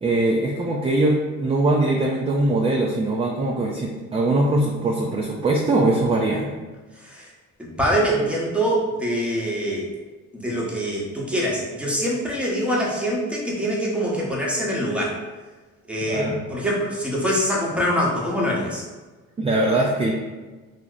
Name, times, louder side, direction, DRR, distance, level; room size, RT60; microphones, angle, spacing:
voice 1, 0.0-6.5 16.1-16.4 19.4-20.1, right 2 dB, 20° right, -1 dB, 0.4 m, -21 dB
voice 2, 7.6-9.9 10.3-15.2 15.9-18.8, equal, 5° right, -4 dB, 0.8 m, -24 dB
2.9 x 2.1 x 3.7 m, 1.3 s
cardioid pair, 90°, 30 cm